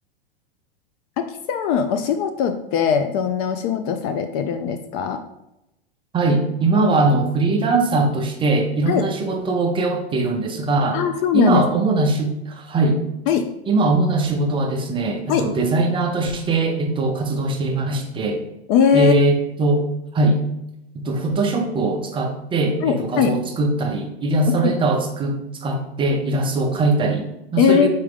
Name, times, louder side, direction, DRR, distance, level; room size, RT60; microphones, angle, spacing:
voice 1, 1.2-5.2 8.9-9.0 10.9-11.6 13.3-13.4 15.3-15.4 18.7-19.3 22.8-23.3 24.5-24.7 27.6-27.9, left 7 dB, 40° left, 8 dB, 0.4 m, -20 dB
voice 2, 6.1-11.0 11.3-13.0 13.7-18.4 18.9-19.9 20.1-20.4 20.9-27.9, right 2 dB, 15° right, 3 dB, 0.5 m, -21 dB
4.3 x 3.6 x 3.4 m, 0.87 s
supercardioid pair, 130°, 31 cm